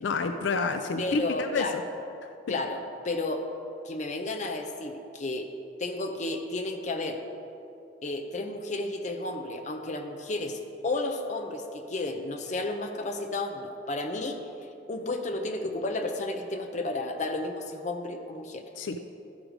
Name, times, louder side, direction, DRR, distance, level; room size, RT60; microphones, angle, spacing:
voice 1, 0.0-1.6 2.2-2.3 18.8-19.1, left 4 dB, 80° left, 7 dB, 0.4 m, -29 dB
voice 2, 1.0-1.8 2.5-3.5 3.9-5.5 5.8-7.2 8.0-14.4 14.9-18.6, left 2 dB, 40° left, 4 dB, 0.7 m, -32 dB
12.5 x 4.8 x 5.0 m, 2.7 s
head